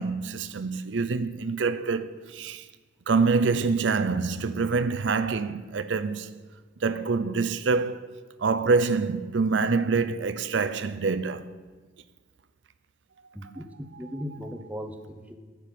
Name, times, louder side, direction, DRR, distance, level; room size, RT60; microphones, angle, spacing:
voice 1, 0.0-2.7 3.1-6.3 6.8-8.1 8.4-11.5, right 4 dB, 80° right, 0.6 m, -26 dB
voice 2, 13.3-15.4, equal, 10° right, 0.9 m, -38 dB
9.7 x 6.9 x 9.1 m
head